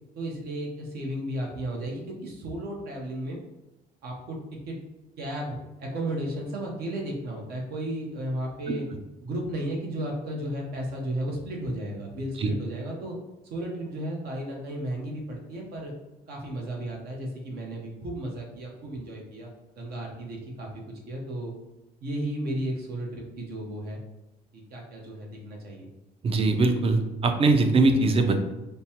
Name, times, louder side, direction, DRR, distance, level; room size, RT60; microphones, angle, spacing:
voice 1, 0.1-3.4 4.0-4.8 5.2-8.8 9.2-13.1 13.5-15.9 16.3-19.5 19.8-20.7 21.1-21.5 22.0-24.0 24.5-25.9, right 1 dB, 70° right, 0 dB, 0.9 m, -34 dB
voice 2, 26.2-28.4, right 3 dB, 35° right, 7 dB, 0.5 m, -21 dB
5.2 x 2.1 x 2.9 m, 1.0 s
cardioid pair, 110°, 17 cm